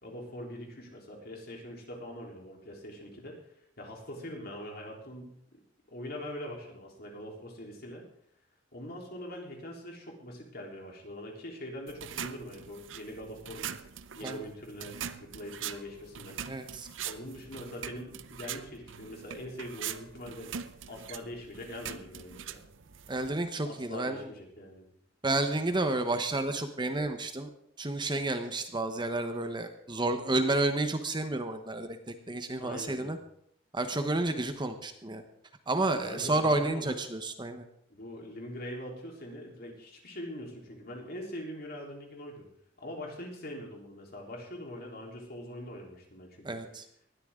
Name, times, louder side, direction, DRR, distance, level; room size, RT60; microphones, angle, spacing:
voice 1, 0.0-3.4 3.8-5.3 5.9-8.0 8.7-13.7 14.1-16.4 17.0-20.5 20.9-22.6 23.6-24.9 32.6-33.1 35.9-37.0 37.9-42.5 42.8-46.5, left 1 dB, 55° left, 0 dB, 3.7 m, -43 dB
sound 1, 11.9-23.3, right 8 dB, 90° right, 0.7 m, -42 dB
voice 2, 16.5-16.9 23.1-24.3 25.2-27.5 27.8-33.2 33.7-35.2 35.7-37.7 46.4-46.8, right 2 dB, 25° right, 7 dB, 1.0 m, -31 dB
19.5 x 12.5 x 3.8 m, 0.69 s
head